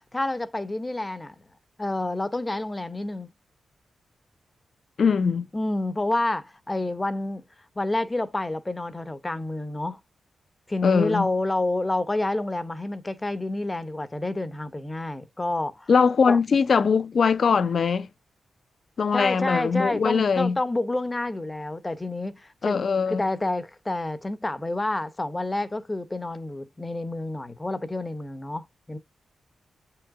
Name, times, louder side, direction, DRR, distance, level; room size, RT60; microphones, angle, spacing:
voice 1, 0.1-1.3 1.8-3.3 5.5-7.4 7.8-10.0 10.7-15.9 16.3-16.4 19.1-29.0, left 2 dB, 15° left, 0.8 m, -29 dB
voice 2, 5.0-5.5 10.8-11.3 15.9-18.1 19.0-20.6 22.6-23.2, left 5 dB, 45° left, 0.6 m, -21 dB
8.3 x 4.7 x 2.5 m
wide cardioid pair, 175°, 0 cm